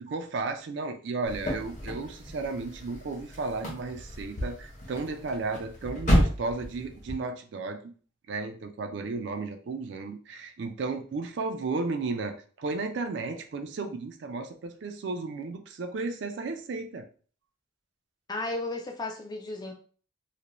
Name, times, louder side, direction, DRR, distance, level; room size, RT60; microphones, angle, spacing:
voice 1, 0.0-7.9 8.3-17.1, right 3 dB, 60° right, 7 dB, 0.3 m, -34 dB
sound 1, 1.3-7.1, equal, 35° left, 0.7 m, -31 dB
voice 2, 18.3-19.7, left 2 dB, 20° left, 3 dB, 0.3 m, -34 dB
2.4 x 2.1 x 2.9 m, 0.41 s
head